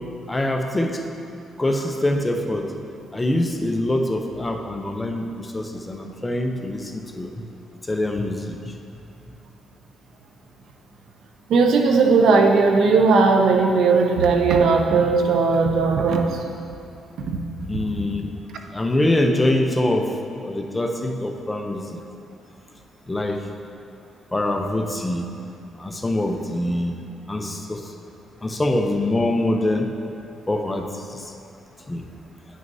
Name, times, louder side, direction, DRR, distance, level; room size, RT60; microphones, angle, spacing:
voice 1, 0.3-1.0 1.6-2.7 3.1-7.3 7.9-8.7 17.7-18.3 18.7-20.1 20.4-22.0 23.1-23.4 24.3-25.3 25.8-27.0 27.3-27.8 28.4-29.9 30.5-31.2 31.9-32.1, left 1 dB, 15° left, 3 dB, 0.6 m, -24 dB
voice 2, 11.5-16.4 17.2-17.4, right 4 dB, 70° right, 3 dB, 0.7 m, -17 dB
10.0 x 6.3 x 2.7 m, 2.5 s
cardioid pair, 90°, 0 cm